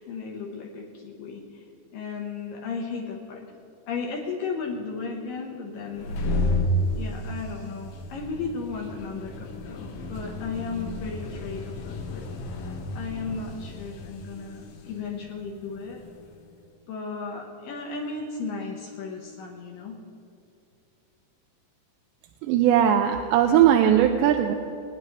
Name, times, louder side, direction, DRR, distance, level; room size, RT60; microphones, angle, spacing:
voice 1, 0.0-1.6 1.9-3.5 3.9-6.5 7.0-12.3 12.9-16.0 16.9-20.0, left 4 dB, 70° left, 0 dB, 2.2 m, -35 dB
sound 1, 5.8-16.3, left 1 dB, 85° left, 3.4 m, -32 dB
voice 2, 22.4-24.6, right 10 dB, 85° right, 4 dB, 2.8 m, -19 dB
25.0 x 9.8 x 3.2 m, 2.6 s
omnidirectional pair, 5.1 m